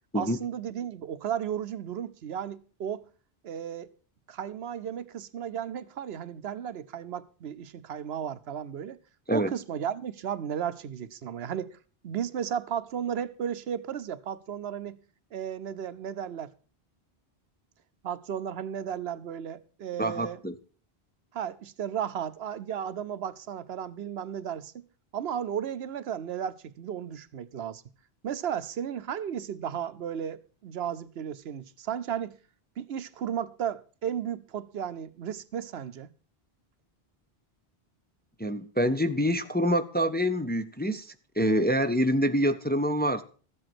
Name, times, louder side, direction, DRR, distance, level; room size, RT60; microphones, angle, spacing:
voice 1, 0.1-3.0 3.4-3.9 4.3-9.0 9.3-11.8 12.0-15.0 15.3-16.5 18.0-20.4 21.3-24.9 25.1-27.8 28.2-32.4 32.8-36.1, right 9 dB, 80° right, 1.0 m, -34 dB
voice 2, 20.0-20.5 38.4-43.2, equal, 10° left, 0.6 m, -26 dB
13.5 x 7.8 x 6.0 m
omnidirectional pair, 1.0 m